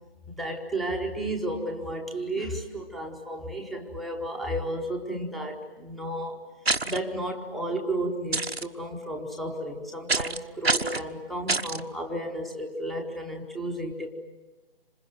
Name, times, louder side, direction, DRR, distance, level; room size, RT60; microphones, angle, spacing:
voice 1, 0.3-6.4 6.8-14.1, right 1 dB, ahead, 2 dB, 0.8 m, -33 dB
sound 1, 6.6-7.0 8.3-8.6 10.1-10.4 10.6-11.0 11.5-11.8, right 3 dB, 85° right, 1.2 m, -26 dB
27.5 x 26.0 x 7.8 m, 1.2 s
figure-of-eight pair, 145°, 30 cm